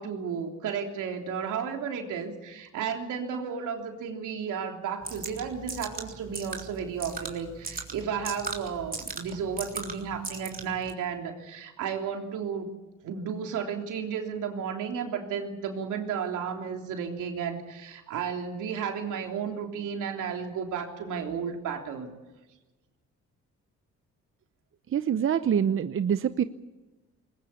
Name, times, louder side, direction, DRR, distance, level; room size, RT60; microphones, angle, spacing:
voice 1, 0.0-12.7 13.0-22.1, right 7 dB, 85° right, 3 dB, 3.5 m, -33 dB
sound 1, 5.0-10.9, right 4 dB, 30° right, 3.6 m, -39 dB
voice 2, 24.9-26.4, right 8 dB, 45° right, 12 dB, 0.8 m, -25 dB
21.0 x 19.5 x 8.5 m, 1.1 s
cardioid pair, 90°, 30 cm